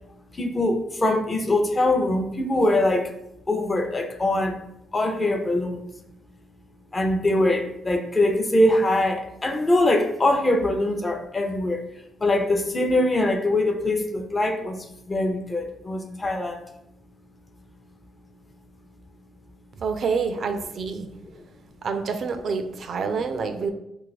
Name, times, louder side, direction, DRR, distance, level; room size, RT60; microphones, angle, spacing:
voice 1, 0.0-3.2 3.5-4.6 4.9-5.8 6.9-16.7 21.2-21.4, left 1 dB, 25° left, 5 dB, 0.5 m, -23 dB
voice 2, 19.8-21.1 21.8-23.7, right 5 dB, 55° right, 8 dB, 0.3 m, -27 dB
2.5 x 2.4 x 3.9 m, 0.83 s
cardioid pair, 90°, 0 cm